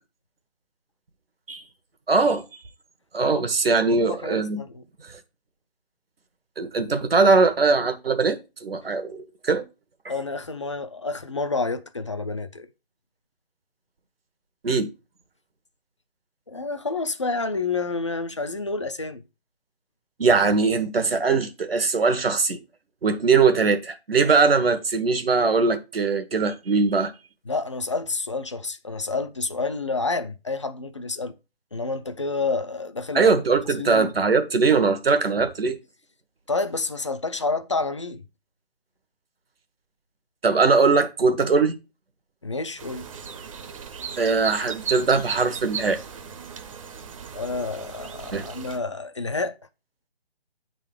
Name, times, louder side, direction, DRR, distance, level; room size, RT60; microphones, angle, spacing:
voice 1, 2.1-2.6 3.1-4.6 5.0-5.2 6.6-9.6 14.6-14.9 20.2-22.6 23.0-27.1 33.1-35.8 40.4-41.8 44.2-46.0 48.3-48.5, right 4 dB, 70° right, 1.2 m, -21 dB
voice 2, 4.1-4.8 10.1-12.7 16.5-19.2 27.5-31.3 31.7-33.2 33.8-34.1 36.5-38.2 42.4-43.0 47.3-49.5, left 3 dB, 30° left, 0.4 m, -29 dB
sound 1, 42.8-48.8, right 6 dB, 35° right, 0.8 m, -36 dB
8.5 x 3.9 x 4.8 m
figure-of-eight pair, 150°, 31 cm